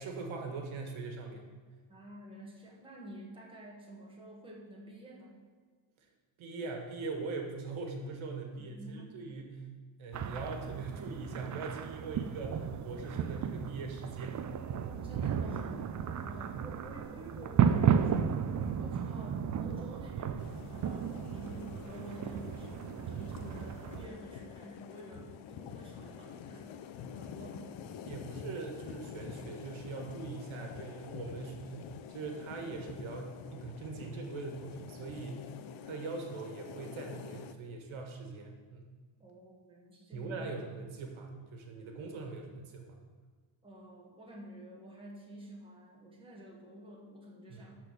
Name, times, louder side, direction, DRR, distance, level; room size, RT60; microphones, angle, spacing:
voice 1, 0.0-1.4 6.4-9.6 10.0-14.5 16.0-16.2 21.2-21.4 28.0-31.8 32.1-35.4 35.8-38.9 40.1-43.0 47.5-47.6, right 3 dB, 70° right, 3 dB, 1.6 m, -41 dB
voice 2, 1.9-5.3 8.5-9.2 14.9-18.3 18.6-27.7 39.2-40.6 43.6-47.8, right 1 dB, 10° right, -3 dB, 1.5 m, -50 dB
sound 1, 10.1-24.1, right 7 dB, 40° right, 0.4 m, -34 dB
sound 2, 20.4-37.5, left 8 dB, 70° left, 0.7 m, -47 dB
12.0 x 4.3 x 6.7 m, 1.5 s
cardioid pair, 165°, 49 cm